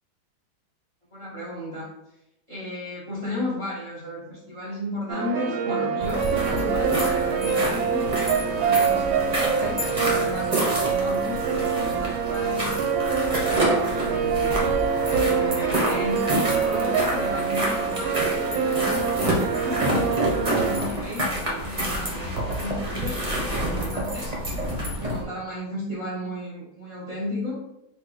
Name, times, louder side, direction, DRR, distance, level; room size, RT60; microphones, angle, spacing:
voice 1, 1.1-1.9 2.5-12.7 13.2-14.6 15.1-16.3 16.6-24.6 24.9-27.6, left 1 dB, 20° left, -5 dB, 1.0 m, -34 dB
sound 1, 5.1-20.8, right 6 dB, 90° right, 1.4 m, -25 dB
sound 2, 6.0-25.2, right 1 dB, 30° right, 0.8 m, -28 dB
4.2 x 2.6 x 4.8 m, 0.87 s
omnidirectional pair, 2.2 m